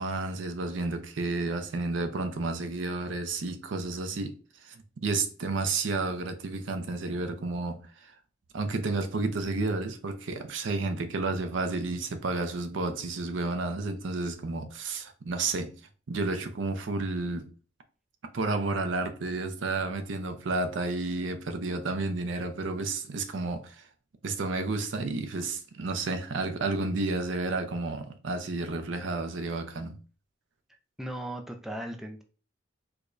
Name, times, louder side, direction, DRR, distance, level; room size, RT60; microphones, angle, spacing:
voice 1, 0.0-8.1 8.5-15.8 16.1-17.5 18.3-23.9 24.2-30.0, right 3 dB, 80° right, 0.5 m, -31 dB
voice 2, 31.0-32.2, right 1 dB, ahead, 0.3 m, -37 dB
4.7 x 2.2 x 2.5 m
head